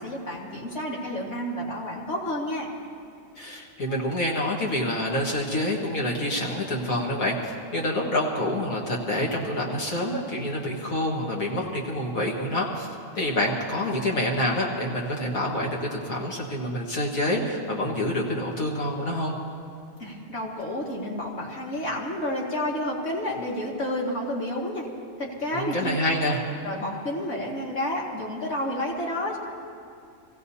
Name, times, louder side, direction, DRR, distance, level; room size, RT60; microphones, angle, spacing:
voice 1, 0.0-2.7 20.0-24.9 25.2-26.0 26.6-29.4, left 1 dB, 55° left, -3 dB, 2.4 m, -30 dB
voice 2, 3.4-12.9 13.2-19.4 25.5-26.4, left 1 dB, 90° left, -3 dB, 2.0 m, -27 dB
26.0 x 16.5 x 2.8 m, 2.4 s
omnidirectional pair, 1.4 m